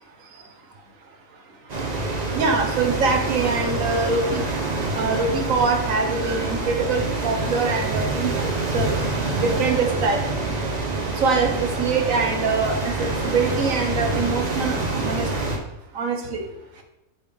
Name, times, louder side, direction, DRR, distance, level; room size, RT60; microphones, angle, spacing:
sound 1, 1.7-15.6, right 3 dB, 35° right, 0.9 m, -26 dB
voice 1, 2.3-4.4 4.9-8.3 8.7-8.9 9.4-10.2 11.2-14.8 15.0-15.3 15.9-16.5, right 4 dB, 60° right, 4 dB, 1.3 m, -23 dB
7.3 x 3.4 x 5.0 m, 0.96 s
omnidirectional pair, 1.6 m